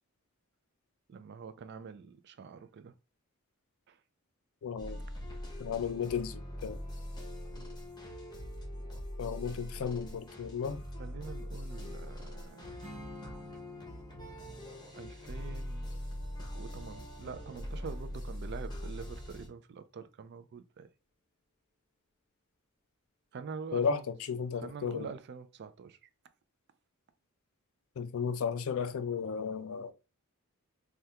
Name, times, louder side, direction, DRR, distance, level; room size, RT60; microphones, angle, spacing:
voice 1, 1.1-2.9 3.9-4.0 7.5-7.7 11.0-12.8 14.9-15.9 16.6-20.9 23.3-24.1 24.5-26.0, right 5 dB, 50° right, 0.3 m, -45 dB
voice 2, 4.6-5.0 5.6-6.8 9.2-10.8 23.7-25.1 28.0-29.9, left 6 dB, 65° left, 0.4 m, -34 dB
sound 1, 4.8-19.5, equal, 20° left, 0.7 m, -42 dB
Strum, 12.8-18.1, right 1 dB, 30° right, 0.8 m, -53 dB
3.4 x 2.3 x 2.8 m
head